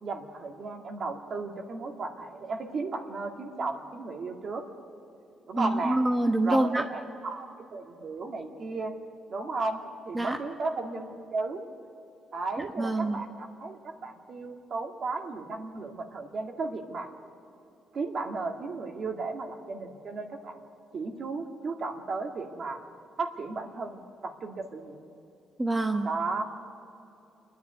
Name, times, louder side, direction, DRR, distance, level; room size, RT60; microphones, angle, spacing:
voice 1, 0.0-4.6 5.5-6.0 6.4-8.9 9.3-9.8 10.1-11.6 12.3-17.1 17.9-20.6 20.9-22.8 23.2-25.0 26.0-26.4, right 3 dB, 50° right, 3 dB, 2.2 m, -34 dB
voice 2, 5.6-6.8 10.1-10.4 12.8-13.2 25.6-26.1, right 1 dB, 15° right, 3 dB, 1.1 m, -26 dB
28.0 x 10.5 x 9.4 m, 2.9 s
cardioid pair, 90°, 0 cm